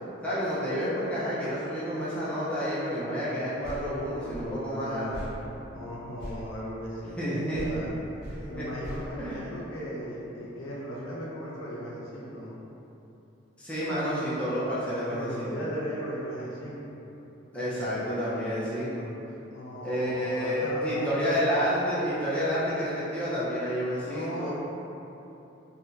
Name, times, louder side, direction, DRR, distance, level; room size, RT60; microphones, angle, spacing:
voice 1, 0.2-5.1 7.2-7.6 9.2-9.4 13.6-15.5 17.5-19.1 19.8-24.5, equal, 5° left, -11 dB, 0.6 m, -29 dB
voice 2, 3.2-5.3 5.7-8.0 8.4-12.5 15.1-17.0 19.5-21.3 24.0-24.5, equal, 90° left, -6 dB, 0.7 m, -37 dB
sound 1, 3.6-7.3 7.5-10.0, equal, 50° right, 1.3 m, -43 dB
3.2 x 2.4 x 2.7 m, 3.0 s
head